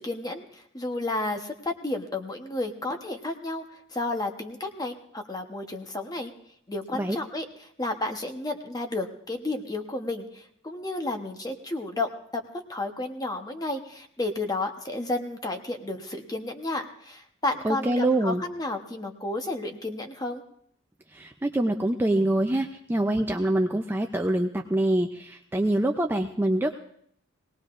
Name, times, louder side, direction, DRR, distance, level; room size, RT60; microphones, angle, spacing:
voice 1, 0.0-6.3 6.7-12.4 12.7-20.4, left 2 dB, 20° left, 5 dB, 1.0 m, -32 dB
voice 2, 17.6-18.4 21.1-26.8, right 1 dB, 10° right, 3 dB, 0.4 m, -25 dB
20.0 x 18.5 x 2.5 m, 0.67 s
head